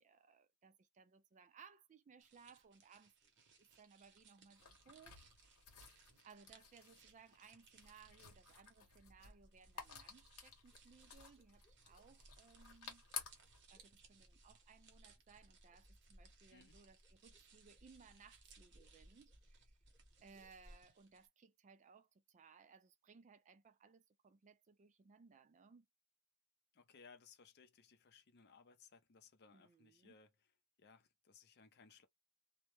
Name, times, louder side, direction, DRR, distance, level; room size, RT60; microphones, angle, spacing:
voice 1, 0.0-3.3 3.6-5.2 5.6-5.7 6.2-13.0 13.7-19.8 20.2-25.9 29.5-30.2, right 5 dB, 35° right, 0.3 m, -64 dB
sound 1, 2.2-21.3, right 6 dB, 55° right, 0.7 m, -69 dB
sound 2, 4.5-13.6, left 6 dB, 75° left, 0.9 m, -55 dB
sound 3, 9.1-20.8, equal, 20° left, 0.9 m, -66 dB
voice 2, 26.7-30.3 30.8-32.1, left 5 dB, 50° left, 0.5 m, -64 dB
2.1 x 2.1 x 2.9 m
head